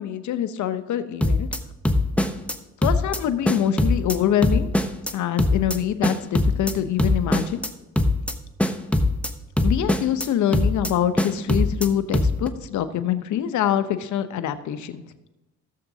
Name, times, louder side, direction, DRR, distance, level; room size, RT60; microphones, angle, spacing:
voice 1, 0.0-1.5 2.8-4.7 5.1-7.6 9.6-15.0, left 10 dB, 75° left, 11 dB, 0.8 m, -25 dB
sound 1, 1.2-1.6 1.8-2.5 2.8-3.2 3.5-4.2 4.4-5.1 5.4-5.8 6.0-6.7 7.0-7.7 8.0-8.3 8.6-9.3 9.6-10.3 10.5-10.9 11.2-11.9 12.1-12.5, left 1 dB, 5° left, 0.7 m, -21 dB
15.5 x 7.2 x 2.8 m, 1.1 s
cardioid pair, 90°, 30 cm